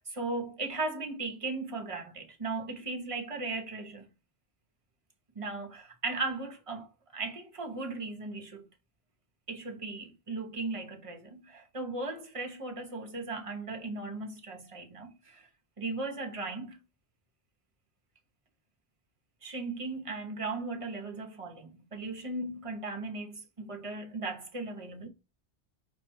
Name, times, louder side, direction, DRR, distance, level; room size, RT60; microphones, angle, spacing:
voice 1, 0.0-4.1 5.3-6.9 7.1-8.7 9.5-15.5 15.8-16.8 19.4-25.1, right 3 dB, 35° right, 0.8 m, -37 dB
5.4 x 2.2 x 4.4 m
omnidirectional pair, 1.1 m